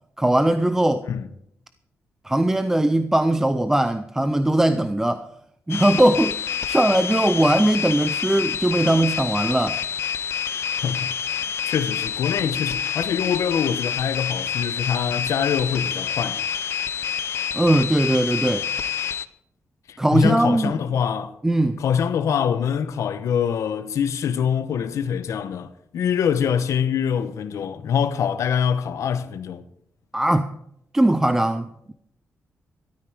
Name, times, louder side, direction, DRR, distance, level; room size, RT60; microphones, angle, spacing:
voice 1, 0.2-1.1 2.2-5.3 5.7-9.8 17.5-18.7 20.0-20.8 21.4-21.8 30.1-30.6 30.9-31.9, right 1 dB, 10° right, 0.5 m, -20 dB
sound 1, 5.7-19.2, left 8 dB, 55° left, 0.6 m, -28 dB
voice 2, 10.7-16.4 19.9-21.4 21.8-29.6, left 7 dB, 85° left, 0.9 m, -24 dB
13.0 x 12.5 x 5.0 m
wide cardioid pair, 180°, 5 cm